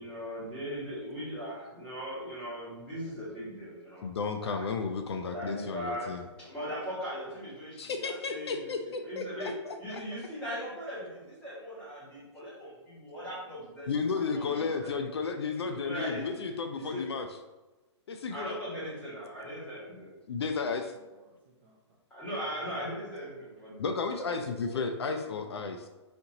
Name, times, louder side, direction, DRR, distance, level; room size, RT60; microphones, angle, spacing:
voice 1, 0.0-4.1 4.4-4.7 5.3-9.5 9.8-14.9 15.5-16.3 16.7-17.0 18.3-20.1 22.1-24.5, equal, 5° left, -10 dB, 1.4 m, -39 dB
voice 2, 4.0-6.2 7.8-10.0 13.9-17.3 18.1-18.6 20.3-20.9 23.8-25.9, left 5 dB, 60° left, 6 dB, 0.4 m, -33 dB
voice 3, 20.9-22.0 22.2-23.5 24.7-25.7, equal, 20° right, -4 dB, 0.4 m, -54 dB
4.3 x 2.8 x 3.8 m, 1.1 s
hypercardioid pair, 175°, 15 cm